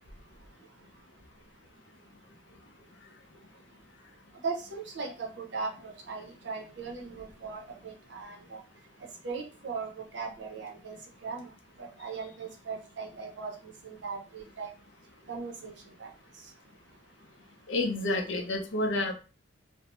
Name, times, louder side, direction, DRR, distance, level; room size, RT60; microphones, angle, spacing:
voice 1, 4.4-8.6 9.2-11.0 11.2-11.5 11.8-13.5 13.8-14.7 15.3-15.7 16.0-16.1, right 4 dB, 65° right, 1 dB, 0.6 m, -38 dB
voice 2, 17.7-19.1, left 2 dB, 70° left, 4 dB, 0.5 m, -29 dB
2.5 x 2.0 x 2.8 m, 0.35 s
head